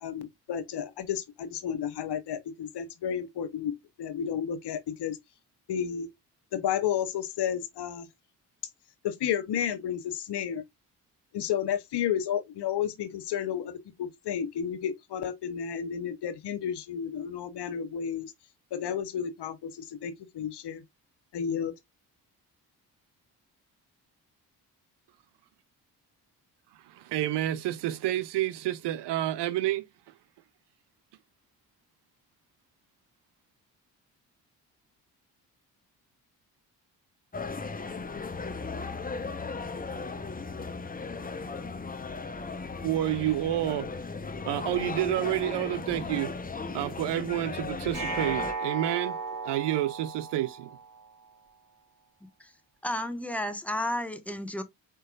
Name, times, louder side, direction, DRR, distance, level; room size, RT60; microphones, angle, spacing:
voice 1, 0.0-5.2 5.7-6.1 6.5-8.1 9.0-10.6 11.3-13.7 14.0-18.3 18.7-20.8 21.3-21.7, left 9 dB, 60° left, 1.0 m, -32 dB
voice 2, 26.9-29.8 42.8-43.9 44.5-46.3 46.7-49.2 49.4-50.7, right 13 dB, 60° right, 0.6 m, -29 dB
sound 1, 37.3-48.5, left 4 dB, 20° left, 0.8 m, -36 dB
sound 2, 47.9-51.0, right 4 dB, 40° right, 3.3 m, -35 dB
voice 3, 52.8-54.6, left 1 dB, 5° left, 1.2 m, -32 dB
4.5 x 4.4 x 2.4 m
hypercardioid pair, 45°, 46 cm